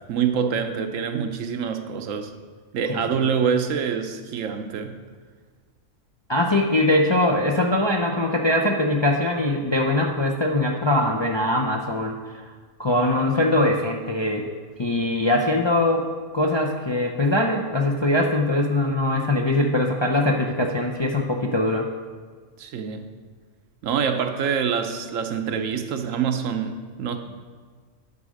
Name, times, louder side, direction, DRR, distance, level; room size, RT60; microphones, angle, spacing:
voice 1, 0.0-2.3 2.7-5.0 22.6-23.1 23.8-27.2, right 7 dB, 85° right, 1.1 m, -26 dB
voice 2, 2.9-3.4 6.3-12.4 12.8-14.5 14.8-16.1 16.3-21.9, left 1 dB, 40° left, 0.4 m, -22 dB
9.7 x 4.9 x 6.3 m
omnidirectional pair, 1.3 m